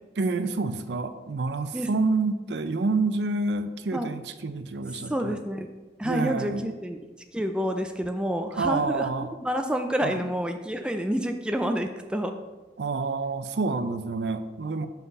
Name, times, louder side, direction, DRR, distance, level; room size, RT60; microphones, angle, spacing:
voice 1, 0.2-5.4 6.0-6.7 8.6-9.3 10.0-10.3 12.8-14.9, right 3 dB, 80° right, 10 dB, 0.5 m, -28 dB
voice 2, 5.1-5.7 6.0-7.0 7.3-12.3, equal, 5° right, 5 dB, 0.4 m, -28 dB
5.8 x 5.8 x 5.4 m, 1.2 s
head